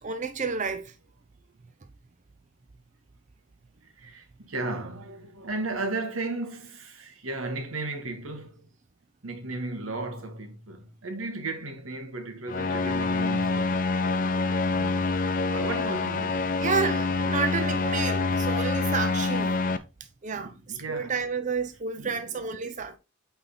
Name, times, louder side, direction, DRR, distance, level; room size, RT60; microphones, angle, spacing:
voice 1, 0.0-0.9 16.6-19.6 20.2-23.0, right 5 dB, 35° right, 0.6 m, -30 dB
voice 2, 4.0-8.7 9.2-13.8 14.7-15.1 15.5-16.4 17.8-17.9 20.4-21.1 22.0-22.4 22.9-23.0, right 2 dB, 90° right, 1.7 m, -35 dB
sound 1, 12.5-19.8, left 3 dB, 40° left, 0.7 m, -26 dB
8.4 x 4.0 x 4.0 m
head